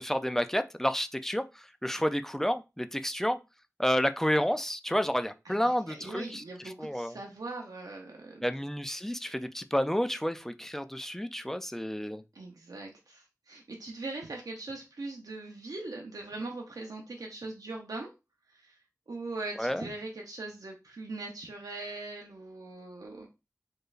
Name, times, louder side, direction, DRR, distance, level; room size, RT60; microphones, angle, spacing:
voice 1, 0.0-3.4 3.8-6.4 6.8-7.1 8.4-12.2 19.6-19.8, equal, 5° left, 0.3 m, -30 dB
voice 2, 5.4-8.4 12.3-18.1 18.5-18.8 19.1-23.3, right 2 dB, 80° right, 0.6 m, -41 dB
4.4 x 3.1 x 2.5 m
wide cardioid pair, 70°, 6 cm